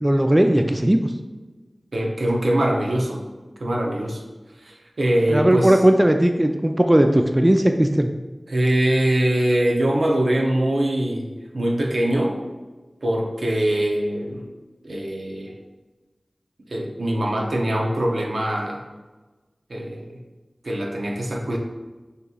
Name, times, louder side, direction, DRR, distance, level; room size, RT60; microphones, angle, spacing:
voice 1, 0.0-1.1 5.3-8.1, right 1 dB, 20° right, 5 dB, 0.3 m, -17 dB
voice 2, 1.9-3.2 3.6-4.2 4.6-5.8 8.5-11.3 11.5-12.4 13.0-14.4 14.8-15.5 16.7-18.8 19.7-20.2 20.6-21.6, right 1 dB, 80° right, 0 dB, 0.7 m, -22 dB
6.4 x 3.0 x 2.3 m, 1.2 s
wide cardioid pair, 45°, 0 cm